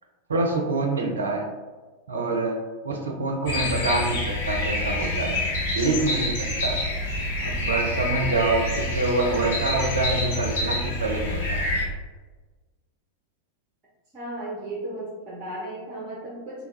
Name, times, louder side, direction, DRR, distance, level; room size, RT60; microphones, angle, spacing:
voice 1, 0.3-1.5 2.1-2.6 2.8-5.4 5.7-6.8 7.4-11.7, right 2 dB, 70° right, 2 dB, 0.5 m, -26 dB
sound 1, 3.5-11.9, left 1 dB, 55° left, 0.9 m, -27 dB
voice 2, 14.1-16.7, right 1 dB, 25° right, -5 dB, 0.9 m, -35 dB
3.3 x 2.3 x 3.3 m, 1.3 s
figure-of-eight pair, 90°, 0 cm